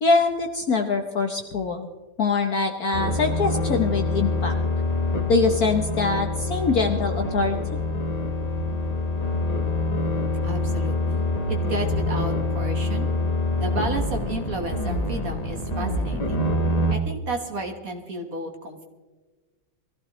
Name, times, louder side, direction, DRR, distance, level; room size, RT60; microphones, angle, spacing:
voice 1, 0.0-1.9 2.2-4.5 5.3-7.8, left 4 dB, 55° left, 3 dB, 1.2 m, -23 dB
sound 1, 2.9-16.9, left 2 dB, 35° left, 0.6 m, -26 dB
voice 2, 10.4-13.1 13.6-16.5 16.9-18.8, right 2 dB, 45° right, 3 dB, 1.7 m, -32 dB
23.0 x 15.0 x 3.1 m, 1.3 s
omnidirectional pair, 2.4 m